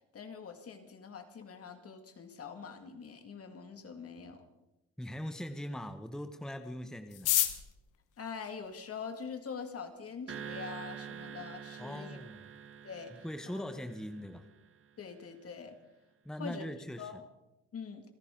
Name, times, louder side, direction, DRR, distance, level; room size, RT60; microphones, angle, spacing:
voice 1, 0.1-4.4 8.2-12.2 12.8-13.1 13.5-13.6 15.0-15.8 16.4-16.6 17.0-17.2 17.7-18.0, left 6 dB, 50° left, 6 dB, 2.2 m, -44 dB
voice 2, 5.0-7.3 11.8-12.4 13.1-14.5 16.2-17.1, equal, ahead, 8 dB, 1.1 m, -41 dB
sound 1, 7.1-9.3 10.1-10.2 10.4-10.5 10.8-11.3 11.6-11.7 11.9-12.3 12.6-12.8 13.2-13.5, left 13 dB, 90° left, 1.3 m, -33 dB
sound 2, 10.3-14.8, right 7 dB, 45° right, 1.1 m, -46 dB
28.5 x 11.0 x 3.8 m, 0.94 s
cardioid pair, 90°, 30 cm